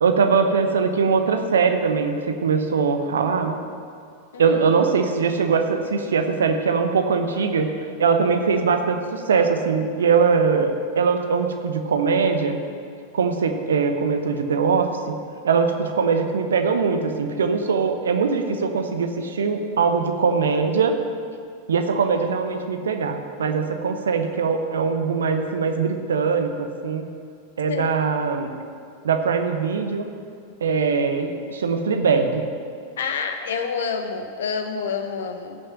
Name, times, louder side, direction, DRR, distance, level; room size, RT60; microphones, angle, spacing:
voice 1, 0.0-3.6 4.4-7.7 8.0-12.6 13.1-15.1 15.4-21.0 21.7-27.1 27.6-28.5 29.0-30.0 30.6-32.4, right 5 dB, 65° right, 6 dB, 1.0 m, -21 dB
voice 2, 4.3-4.6 27.7-27.9 33.0-35.6, left 5 dB, 60° left, 7 dB, 1.1 m, -28 dB
16.0 x 6.7 x 5.9 m, 2.3 s
figure-of-eight pair, 90°, 0 cm